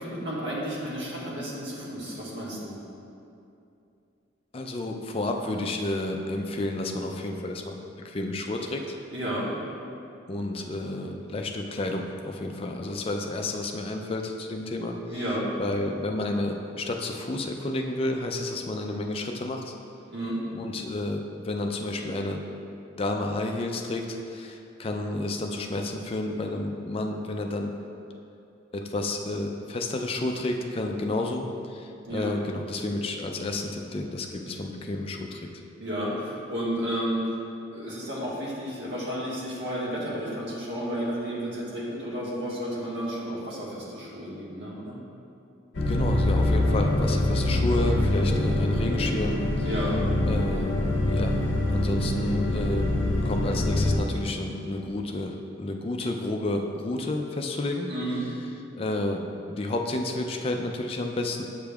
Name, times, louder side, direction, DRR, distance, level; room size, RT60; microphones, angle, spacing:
voice 1, 0.0-2.7 9.1-9.5 15.1-15.5 20.1-20.4 32.0-32.3 35.8-37.3 37.7-45.0 49.6-50.0 57.9-58.2, equal, 60° right, -6 dB, 1.5 m, -32 dB
voice 2, 4.5-8.8 10.3-15.2 15.6-19.7 20.5-22.4 23.0-27.7 28.7-35.5 45.9-49.4 50.3-50.7 51.1-51.4 51.7-57.9 58.8-59.2 59.5-61.4, left 2 dB, 30° left, 3 dB, 0.4 m, -31 dB
sound 1, 45.7-54.0, left 1 dB, 60° left, 0.7 m, -24 dB
8.1 x 5.1 x 2.3 m, 2.6 s
head